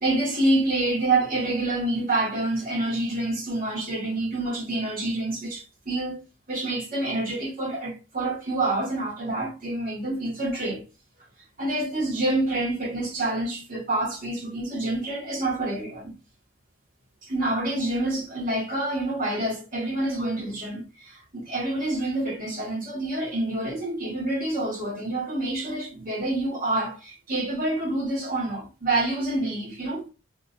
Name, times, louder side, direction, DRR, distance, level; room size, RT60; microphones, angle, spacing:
voice 1, 0.0-6.2 6.5-10.8 11.6-16.1 17.2-30.1, right 2 dB, 45° right, 2.0 m, -27 dB
3.7 x 3.0 x 2.8 m
head